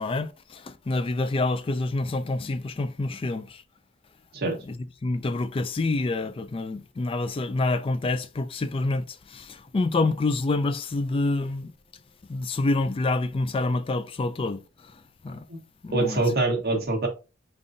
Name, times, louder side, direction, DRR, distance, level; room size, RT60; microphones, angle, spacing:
voice 1, 0.0-3.6 4.6-4.8 5.0-11.7 12.3-15.4 15.8-16.2 16.7-16.8, left 2 dB, 25° left, 0.3 m, -27 dB
voice 2, 15.9-17.1, right 2 dB, 50° right, 1.1 m, -24 dB
5.2 x 2.6 x 2.6 m
head